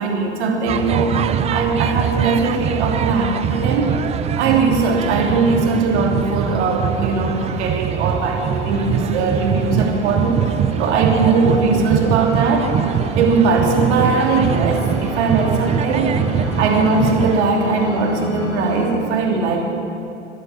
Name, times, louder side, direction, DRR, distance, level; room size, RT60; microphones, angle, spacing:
voice 1, 0.0-4.0 4.4-10.5 10.8-12.7 13.1-16.2 16.6-19.6, right 4 dB, 65° right, 0 dB, 3.0 m, -19 dB
sound 1, 0.7-17.4, right 9 dB, 20° right, 0.4 m, -23 dB
sound 2, 4.9-18.9, left 1 dB, 50° left, 4.4 m, -33 dB
14.0 x 11.0 x 8.5 m, 2.7 s
hypercardioid pair, 95°, 36 cm